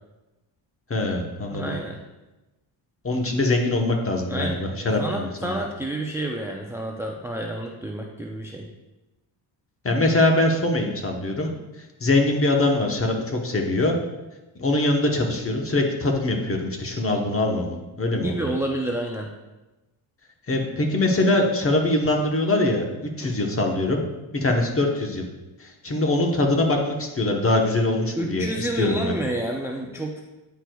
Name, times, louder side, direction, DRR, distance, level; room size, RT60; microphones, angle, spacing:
voice 1, 0.9-1.8 3.0-5.5 9.8-11.5 12.0-14.0 14.6-18.5 20.5-22.8 23.2-24.0 24.3-25.3 25.6-29.1, left 2 dB, 30° left, 2 dB, 1.0 m, -23 dB
voice 2, 1.5-2.0 4.3-4.6 5.0-8.7 18.1-19.3 23.2-23.3 28.2-30.2, right 1 dB, 5° right, 1 dB, 0.5 m, -29 dB
9.6 x 4.6 x 2.3 m, 1.1 s
cardioid pair, 85°, 47 cm